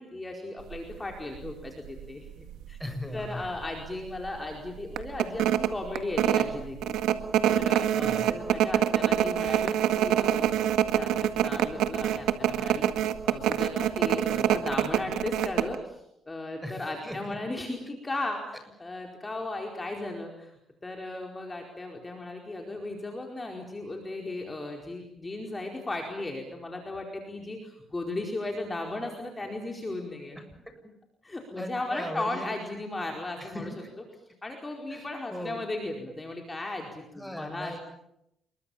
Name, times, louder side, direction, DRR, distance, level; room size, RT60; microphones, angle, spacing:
voice 1, 0.0-2.8 3.1-6.9 7.4-10.6 10.9-30.4 31.2-33.7 34.4-37.8, left 2 dB, 20° left, 1 dB, 4.7 m, -36 dB
sound 1, 0.7-0.9 1.4-1.5 1.9-2.8 3.2-3.3 3.6-3.9 4.3-4.4 5.0-15.7, right 11 dB, 90° right, 1.8 m, -25 dB
voice 2, 2.8-3.6 7.9-8.3 16.6-17.4 30.4-30.7 31.6-32.5 33.4-33.8 34.9-35.5 37.1-37.8, left 1 dB, ahead, 6 dB, 7.4 m, -39 dB
29.0 x 22.5 x 7.4 m, 0.81 s
cardioid pair, 90°, 0 cm